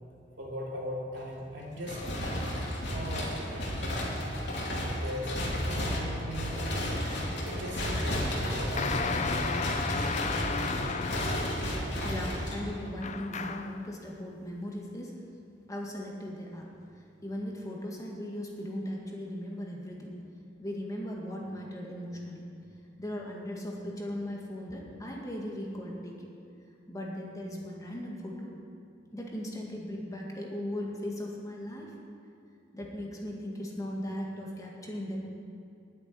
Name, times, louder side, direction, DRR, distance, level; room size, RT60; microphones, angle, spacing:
voice 1, 0.4-2.0 2.9-3.8 4.8-5.4 5.7-6.9 7.4-9.4, equal, 70° right, -3 dB, 3.2 m, -39 dB
sound 1, 1.8-13.0, equal, 65° left, 2.9 m, -32 dB
sound 2, 8.8-11.8 13.0-13.8, left 4 dB, 40° left, 0.6 m, -33 dB
voice 2, 12.0-15.2 15.7-20.2 20.6-22.5 23.0-26.3 26.9-28.6 29.1-31.9 32.7-35.2, left 1 dB, 20° left, -2 dB, 1.9 m, -38 dB
9.9 x 9.2 x 10.0 m, 2.5 s
head